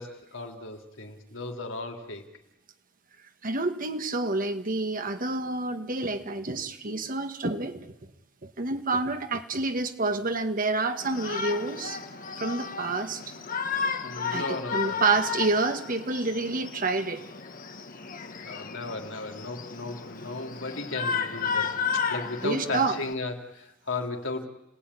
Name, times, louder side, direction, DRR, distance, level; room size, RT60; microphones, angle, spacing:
voice 1, 0.0-2.2 14.0-15.0 18.4-24.5, left 3 dB, 80° left, 3 dB, 3.4 m, -35 dB
voice 2, 3.4-7.9 8.4-12.0 12.4-13.2 14.3-17.2 22.4-23.0, right 3 dB, 45° right, 8 dB, 1.8 m, -28 dB
Shout, 11.0-23.1, left 6 dB, 45° left, 1.7 m, -33 dB
29.5 x 18.5 x 10.0 m, 0.95 s
head